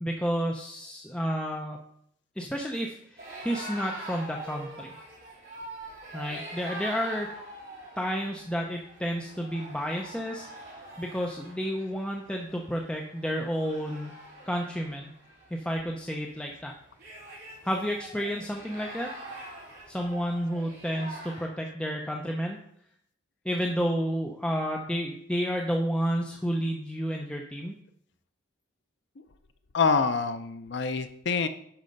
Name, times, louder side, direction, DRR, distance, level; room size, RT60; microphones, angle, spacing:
voice 1, 0.0-1.8 2.4-4.9 6.1-7.4 8.0-14.2 14.4-15.1 15.5-16.7 17.6-19.1 19.9-22.6 23.4-27.8, equal, 5° left, 1 dB, 0.5 m, -31 dB
sound 1, 3.2-21.4, right 1 dB, 45° right, 3.1 m, -44 dB
voice 2, 29.7-31.5, left 5 dB, 55° left, 10 dB, 0.5 m, -26 dB
10.5 x 4.3 x 5.3 m, 0.71 s
head